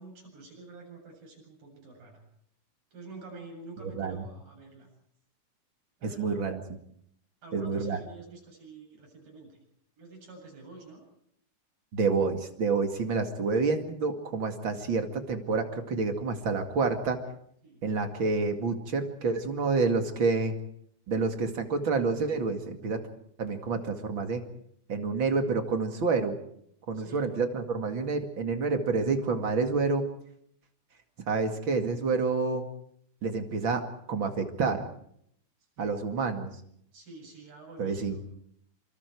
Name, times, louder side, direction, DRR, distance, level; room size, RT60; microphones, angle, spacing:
voice 1, 0.0-2.2 2.9-4.9 6.0-6.4 7.4-9.6 10.0-11.1 17.6-17.8 26.9-27.2 35.8-36.0 36.9-38.2, right 3 dB, 60° right, 1 dB, 9.5 m, -48 dB
voice 2, 6.0-6.8 7.5-8.0 11.9-17.2 17.8-20.5 21.1-23.0 23.4-24.4 24.9-26.4 26.9-30.0 31.3-32.7 33.2-33.8 34.1-34.8 35.8-36.5 37.8-38.2, right 4 dB, 40° right, 6 dB, 2.2 m, -28 dB
26.5 x 25.5 x 4.7 m, 0.69 s
omnidirectional pair, 4.7 m